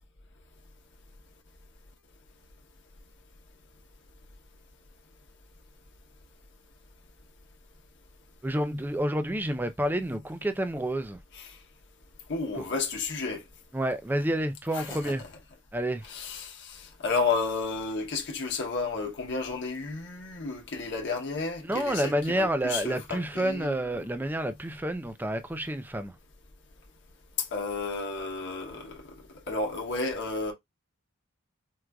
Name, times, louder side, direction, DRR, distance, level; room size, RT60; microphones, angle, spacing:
voice 1, 8.4-11.2 12.6-12.7 13.7-15.2 15.7-16.1 21.6-26.2, right 1 dB, 10° right, 0.4 m, -29 dB
voice 2, 12.3-13.4 14.7-15.1 16.1-23.9 27.5-29.1 29.5-30.5, left 4 dB, 55° left, 1.0 m, -32 dB
4.6 x 2.5 x 2.2 m
head